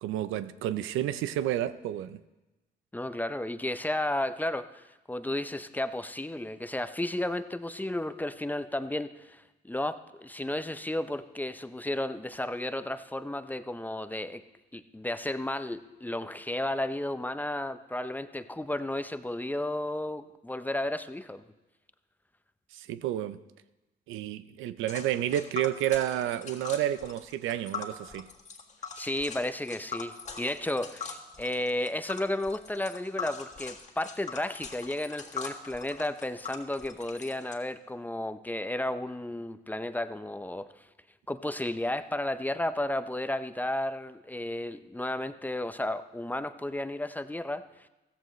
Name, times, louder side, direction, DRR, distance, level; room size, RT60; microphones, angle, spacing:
voice 1, 0.0-2.2 22.8-23.4 24.1-28.3, right 12 dB, 90° right, 0.6 m, -30 dB
voice 2, 2.9-14.4 14.7-21.4 29.0-40.7 41.3-47.6, left 1 dB, 10° left, 0.6 m, -33 dB
Tick, 24.9-37.5, left 5 dB, 35° left, 1.7 m, -42 dB
15.0 x 14.0 x 3.1 m
cardioid pair, 90°, 20 cm